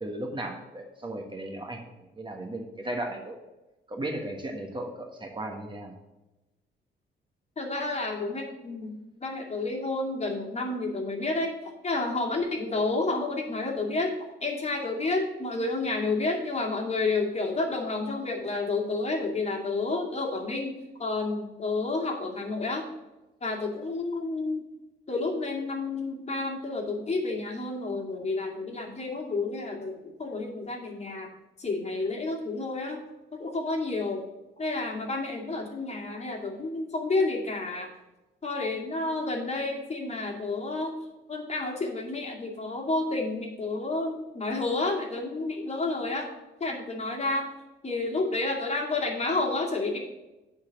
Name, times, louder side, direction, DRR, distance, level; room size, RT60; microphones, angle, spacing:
voice 1, 0.0-3.4 3.9-5.9, right 1 dB, 25° right, 2 dB, 1.4 m, -36 dB
voice 2, 7.6-8.9 9.2-14.1 14.4-22.9 23.4-24.7 25.1-31.3 31.6-33.0 33.3-34.2 34.6-37.9 38.4-40.9 41.3-46.3 46.6-47.5 47.8-50.0, left 3 dB, 35° left, 0 dB, 2.3 m, -30 dB
9.5 x 4.2 x 7.4 m, 1.0 s
cardioid pair, 90°, 20 cm